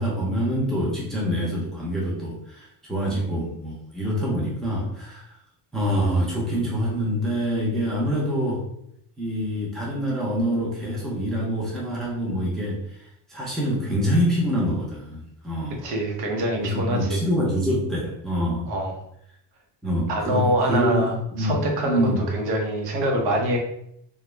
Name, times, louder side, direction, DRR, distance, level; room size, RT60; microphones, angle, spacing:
voice 1, 0.0-5.4 5.7-8.6 9.2-15.8 16.6-18.7 19.8-21.6 21.8-22.2, equal, ahead, -5 dB, 0.5 m, -26 dB
voice 2, 15.8-17.2 18.7-18.9 20.1-23.6, right 1 dB, 65° right, 1 dB, 0.7 m, -25 dB
2.3 x 2.0 x 3.0 m, 0.74 s
cardioid pair, 150°, 42 cm